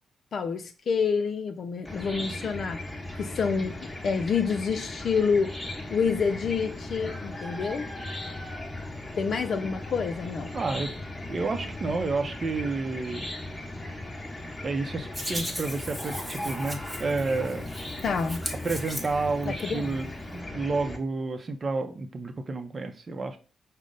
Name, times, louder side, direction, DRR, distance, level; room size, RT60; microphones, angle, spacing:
voice 1, 0.3-2.8 3.2-5.6 5.9-7.9 9.2-10.6 18.0-18.4 19.5-19.9, left 5 dB, 65° left, 0.3 m, -28 dB
Chicken rooster / Cricket, 1.9-21.0, left 1 dB, 20° left, 0.9 m, -37 dB
voice 2, 10.5-10.9 11.3-13.3 14.6-17.7 18.6-23.4, right 3 dB, 40° right, 0.6 m, -30 dB
Hands, 15.1-19.6, equal, 10° right, 0.8 m, -38 dB
5.0 x 2.1 x 3.8 m
cardioid pair, 70°, 0 cm